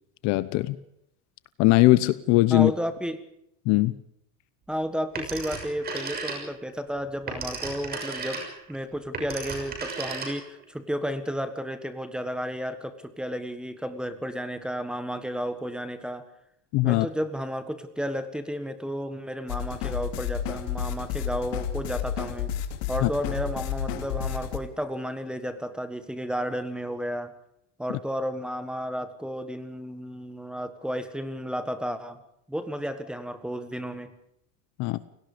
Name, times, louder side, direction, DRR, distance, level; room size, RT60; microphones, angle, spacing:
voice 1, 0.2-0.8 1.6-2.7 3.7-3.9 16.7-17.1 23.0-23.1 34.8-35.0, left 20 dB, 45° left, 16 dB, 0.9 m, -20 dB
voice 2, 2.5-3.2 4.7-8.4 8.7-16.3 16.8-22.5 22.9-27.3 27.8-32.2 32.5-34.1, equal, ahead, 10 dB, 1.4 m, -32 dB
Telephone, 5.2-6.7 7.1-10.6, right 4 dB, 25° right, 6.3 m, -35 dB
sound 1, 19.5-24.6, left 9 dB, 80° left, 2.9 m, -31 dB
29.0 x 18.5 x 5.1 m, 0.76 s
cardioid pair, 165°, 39 cm